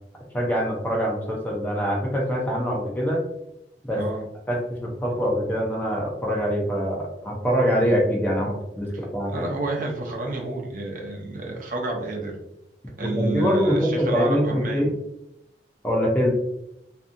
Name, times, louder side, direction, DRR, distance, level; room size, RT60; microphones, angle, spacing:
voice 1, 0.3-3.2 3.8-4.0 4.5-9.4 13.0-14.9 15.8-16.3, equal, 10° left, -2 dB, 0.4 m, -24 dB
voice 2, 9.3-12.3 13.0-14.9, right 2 dB, 50° right, 0 dB, 0.6 m, -30 dB
2.6 x 2.6 x 2.4 m, 0.83 s
head